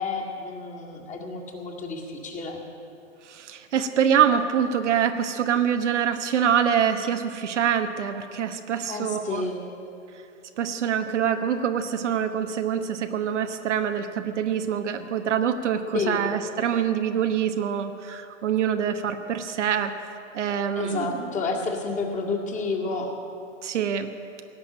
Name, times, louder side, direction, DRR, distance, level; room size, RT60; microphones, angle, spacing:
voice 1, 0.0-2.6 8.9-9.6 15.9-16.2 20.8-23.2, left 4 dB, 20° left, 0 dB, 2.0 m, -30 dB
voice 2, 3.2-9.5 10.6-19.9 20.3-21.3 23.6-24.1, right 8 dB, 65° right, 7 dB, 1.2 m, -25 dB
18.0 x 7.1 x 10.0 m, 2.7 s
hypercardioid pair, 115°, 39 cm